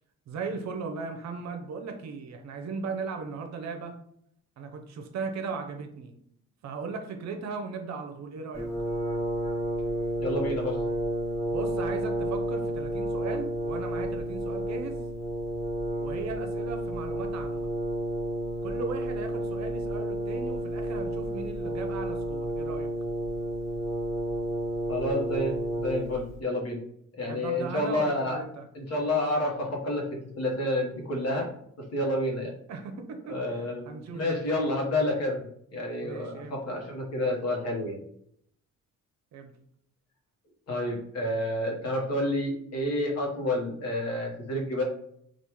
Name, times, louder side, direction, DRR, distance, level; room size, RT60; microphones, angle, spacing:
voice 1, 0.3-4.0 4.6-6.1 6.6-8.7 11.5-15.0 16.0-17.7 18.6-22.9 27.2-28.7 32.7-34.5 36.0-36.6 39.3-39.5, right 4 dB, 65° right, 5 dB, 0.6 m, -37 dB
Brass instrument, 8.5-26.3, right 1 dB, 10° left, 0.9 m, -31 dB
voice 2, 10.2-10.8 24.9-26.8 27.2-28.4 28.7-30.0 30.4-31.5 31.9-32.5 33.3-38.0 40.7-44.8, left 1 dB, 55° left, 0 dB, 1.0 m, -29 dB
3.4 x 2.4 x 2.9 m, 0.70 s
cardioid pair, 90°, 30 cm